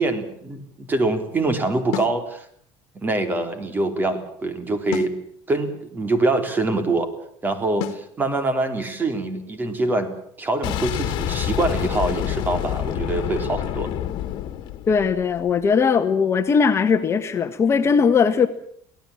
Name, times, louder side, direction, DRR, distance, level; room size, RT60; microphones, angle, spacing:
voice 1, 0.0-2.5 2.9-5.1 5.5-7.1 7.4-10.1 10.4-13.9, right 2 dB, 20° right, 9 dB, 3.7 m, -24 dB
sound 1, 1.9-2.2 4.9-5.2 7.8-8.1, left 15 dB, 85° left, 1.4 m, -30 dB
Boom, 10.6-15.5, left 12 dB, 60° left, 2.1 m, -27 dB
voice 2, 14.9-18.5, left 6 dB, 30° left, 8 dB, 1.5 m, -19 dB
24.0 x 17.5 x 8.7 m, 0.65 s
cardioid pair, 130°, 9 cm